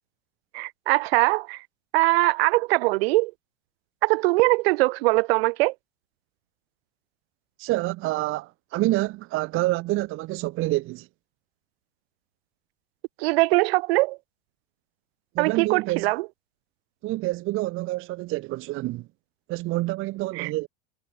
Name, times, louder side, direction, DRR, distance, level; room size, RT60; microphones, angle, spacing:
voice 1, 0.5-1.6 1.9-3.3 4.0-5.7 13.2-14.2 15.4-16.3 20.4-20.5, right 23 dB, 70° right, 2.2 m, -22 dB
voice 2, 7.6-11.1 15.3-16.1 17.0-19.1 19.5-20.7, right 19 dB, 40° right, 1.2 m, -27 dB
supercardioid pair, 140°, 32 cm